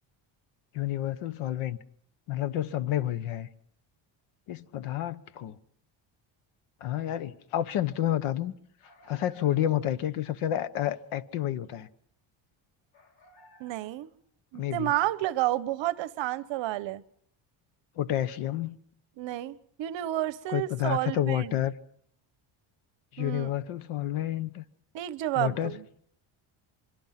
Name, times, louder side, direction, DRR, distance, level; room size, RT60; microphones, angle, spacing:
voice 1, 0.7-1.8 2.3-3.5 4.5-5.6 6.8-8.5 9.1-11.9 14.5-14.9 18.0-18.8 20.5-21.7 23.1-24.6 25.3-25.8, left 12 dB, 85° left, 1.3 m, -30 dB
sound 1, 8.8-10.2 12.9-14.1, right 1 dB, 65° left, 5.8 m, -58 dB
voice 2, 13.6-14.1 14.5-17.0 19.2-21.6 23.2-23.5 24.9-25.8, right 15 dB, 60° right, 1.0 m, -30 dB
24.5 x 23.0 x 5.9 m
cardioid pair, 155°, 49 cm